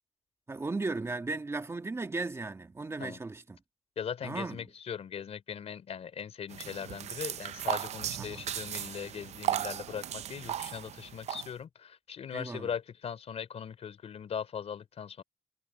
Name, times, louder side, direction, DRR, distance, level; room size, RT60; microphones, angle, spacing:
voice 1, 0.5-3.6 4.2-4.6 8.2-8.5 12.3-12.7, right 3 dB, 25° right, 1.7 m, -36 dB
voice 2, 4.0-15.2, left 7 dB, 70° left, 3.8 m, -39 dB
sound 1, 6.5-11.5, right 11 dB, 85° right, 0.5 m, -36 dB
wide cardioid pair, 120°, 11 cm